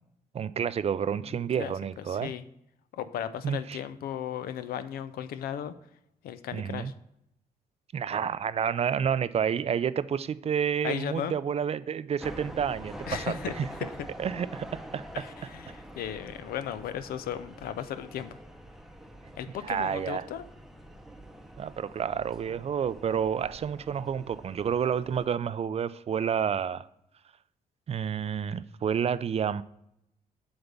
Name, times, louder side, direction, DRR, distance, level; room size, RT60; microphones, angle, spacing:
voice 1, 0.3-2.3 3.4-3.8 6.5-6.9 7.9-13.7 14.2-15.1 19.6-20.2 21.6-26.9 27.9-29.6, right 7 dB, 45° right, 0.4 m, -29 dB
voice 2, 1.2-1.7 2.1-2.4 2.9-5.7 6.2-6.9 10.8-11.3 13.1-13.9 15.1-18.4 19.4-20.5, left 9 dB, 85° left, 0.5 m, -36 dB
sound 1, 12.2-25.3, equal, ahead, 0.8 m, -45 dB
7.9 x 3.5 x 5.2 m
cardioid pair, 80°, 15 cm